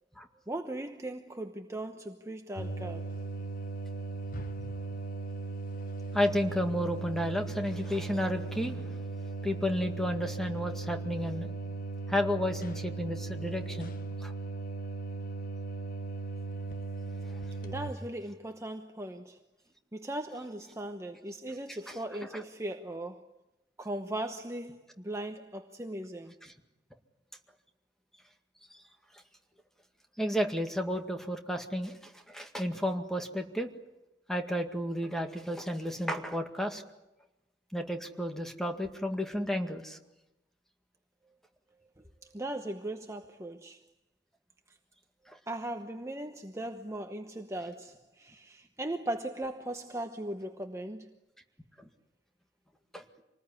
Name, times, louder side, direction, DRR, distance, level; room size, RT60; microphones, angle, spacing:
voice 1, 0.5-3.1 17.6-19.4 19.9-23.3 23.8-26.3 42.0-43.9 44.7-44.8 45.5-51.1, right 1 dB, 15° right, 1.0 m, -38 dB
sound 1, 2.6-17.9, right 3 dB, 55° left, 1.3 m, -38 dB
voice 2, 6.1-9.0 9.4-11.5 12.1-13.9 14.2-14.3 22.3-22.4 28.7-28.8 30.2-33.7 34.3-36.8 37.7-40.0 45.3-45.4 51.8-51.9 52.9-53.0, equal, ahead, 2.0 m, -32 dB
26.5 x 20.0 x 9.8 m
head